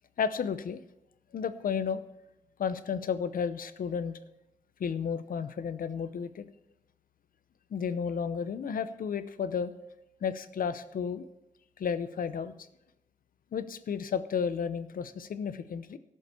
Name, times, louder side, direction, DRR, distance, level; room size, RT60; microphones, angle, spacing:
voice 1, 0.2-0.8 1.3-2.0 2.6-4.2 4.8-6.5 7.7-9.7 10.2-11.2 11.8-12.5 13.5-16.0, left 6 dB, 90° left, 12 dB, 0.7 m, -32 dB
13.0 x 7.2 x 6.9 m, 0.88 s
wide cardioid pair, 125°, 14 cm